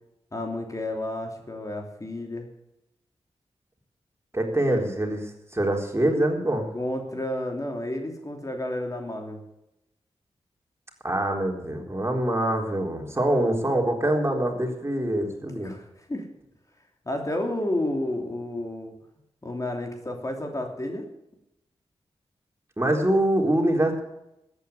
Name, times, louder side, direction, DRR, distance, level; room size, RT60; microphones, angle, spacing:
voice 1, 0.3-2.5 6.7-9.4 15.6-16.3 17.0-18.9 19.4-21.1, left 1 dB, 30° left, 3 dB, 2.9 m, -31 dB
voice 2, 4.3-6.7 11.0-15.8 22.8-24.0, right 1 dB, 25° right, 1 dB, 4.0 m, -24 dB
13.5 x 9.4 x 8.1 m, 0.86 s
cardioid pair, 45°, 11 cm